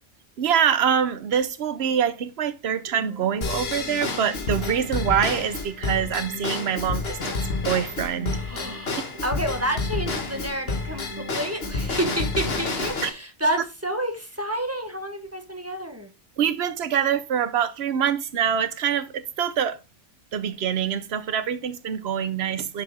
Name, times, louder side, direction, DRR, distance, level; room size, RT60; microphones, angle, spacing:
voice 1, 0.4-7.4 7.6-8.4 13.0-13.1 16.4-19.8 20.3-22.8, right 8 dB, 60° right, 1.0 m, -25 dB
sound 1, 2.9-12.9, left 1 dB, 85° left, 2.4 m, -43 dB
Drum kit / Drum / Bell, 3.4-13.1, left 3 dB, 55° left, 1.6 m, -29 dB
voice 2, 8.3-16.1, right 1 dB, 15° right, 1.3 m, -29 dB
7.0 x 5.7 x 3.5 m
omnidirectional pair, 1.2 m